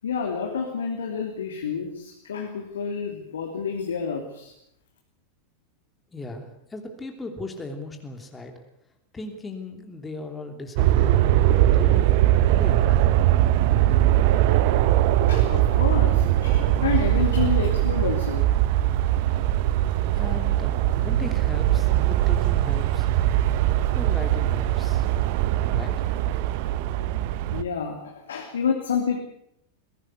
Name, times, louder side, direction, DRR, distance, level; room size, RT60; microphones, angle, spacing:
voice 1, 0.0-4.5 15.1-18.4 27.5-29.2, left 6 dB, 65° left, 1 dB, 3.1 m, -29 dB
voice 2, 6.1-8.5 9.1-12.2 12.5-13.0 20.2-23.1 23.9-25.1 25.6-26.1, left 2 dB, 15° left, 4 dB, 3.2 m, -37 dB
sound 1, 10.8-27.6, right 13 dB, 50° right, 1.1 m, -21 dB
22.0 x 17.5 x 8.2 m, 0.75 s
figure-of-eight pair, 90°, 0 cm